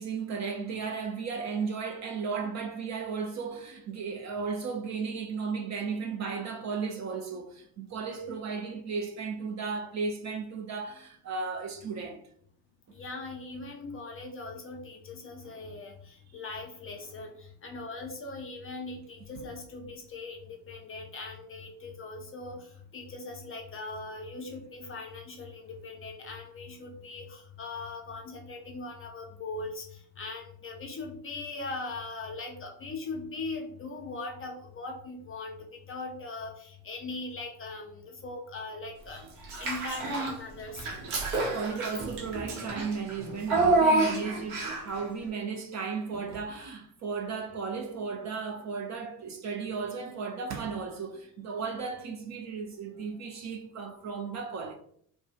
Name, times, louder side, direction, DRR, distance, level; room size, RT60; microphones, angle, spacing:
voice 1, 0.0-12.2 15.4-15.6 41.3-54.7, right 5 dB, 40° right, 0.4 m, -35 dB
voice 2, 12.9-39.2 39.6-40.9, left 3 dB, 30° left, 0.4 m, -40 dB
Child speech kid speaking / Bathtub (filling or washing), 39.4-40.4 40.7-45.0, right 2 dB, 70° right, 0.8 m, -28 dB
2.2 x 2.1 x 2.7 m
hypercardioid pair, 65°, 48 cm